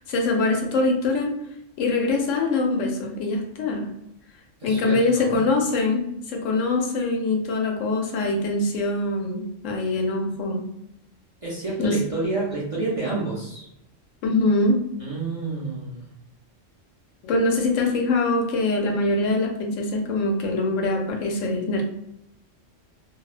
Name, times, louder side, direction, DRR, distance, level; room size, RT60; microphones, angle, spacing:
voice 1, 0.0-1.4 1.8-3.9 4.6-10.6 11.8-12.0 14.2-14.8 17.2-21.8, left 2 dB, 80° left, 2 dB, 0.9 m, -23 dB
voice 2, 4.6-5.4 9.8-9.9 11.4-13.7 15.0-16.1, right 3 dB, 40° right, -6 dB, 0.5 m, -29 dB
2.6 x 2.0 x 2.4 m, 0.81 s
omnidirectional pair, 1.3 m